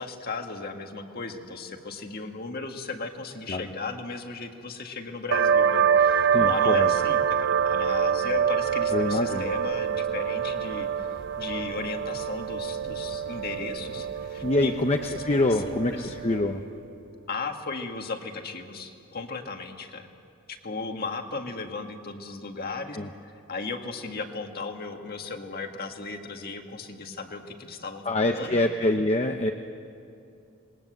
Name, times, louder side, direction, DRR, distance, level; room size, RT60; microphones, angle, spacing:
voice 1, 0.0-16.1 17.3-20.1 20.5-23.0 23.2-28.6, left 3 dB, 45° left, 4 dB, 1.9 m, -36 dB
sound 1, 5.3-16.6, right 7 dB, 60° right, 0.7 m, -26 dB
voice 2, 6.3-6.9 8.9-9.5 14.4-16.6 22.9-23.1 28.0-29.5, left 2 dB, 30° left, 4 dB, 0.8 m, -25 dB
27.0 x 21.0 x 8.0 m, 2.6 s
head